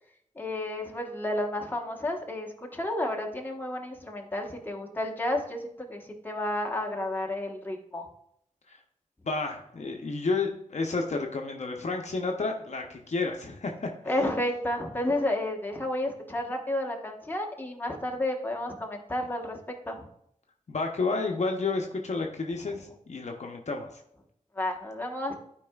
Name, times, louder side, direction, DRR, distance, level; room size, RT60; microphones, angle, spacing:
voice 1, 0.4-8.1 14.0-19.6 19.9-20.0 24.5-25.3, left 1 dB, 15° left, 1 dB, 1.1 m, -31 dB
voice 2, 9.2-13.9 20.7-23.9, left 3 dB, 60° left, 2 dB, 0.7 m, -31 dB
12.0 x 4.7 x 2.3 m, 0.73 s
wide cardioid pair, 80°, 13 cm